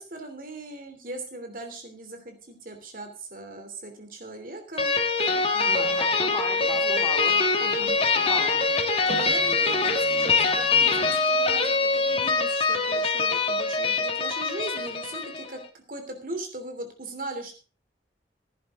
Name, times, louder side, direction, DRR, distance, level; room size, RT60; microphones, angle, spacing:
voice 1, 0.0-4.9 5.5-6.0 6.7-8.0 9.1-15.6 15.9-17.6, right 2 dB, 50° right, 5 dB, 3.0 m, -39 dB
sound 1, 4.8-15.5, left 4 dB, 35° left, 1.6 m, -24 dB
voice 2, 5.7-7.3 7.6-7.7 8.0-8.6, left 1 dB, 10° left, 4 dB, 2.8 m, -36 dB
16.0 x 11.0 x 3.7 m, 0.35 s
head